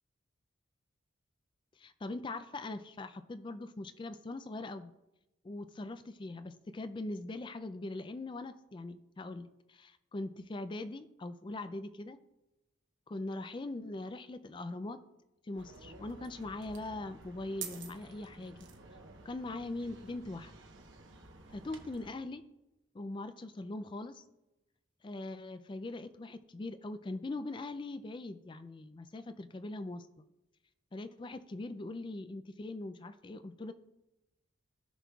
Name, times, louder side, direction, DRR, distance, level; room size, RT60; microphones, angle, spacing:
voice 1, 1.8-4.9 5.4-12.2 13.1-15.0 15.4-18.7 19.2-20.5 21.5-22.4 22.9-24.2 25.0-30.2 30.9-33.7, left 2 dB, 25° left, 11 dB, 0.3 m, -41 dB
sound 1, 15.6-22.1, right 5 dB, 65° right, 1.0 m, -50 dB
16.0 x 6.0 x 2.3 m, 0.97 s
head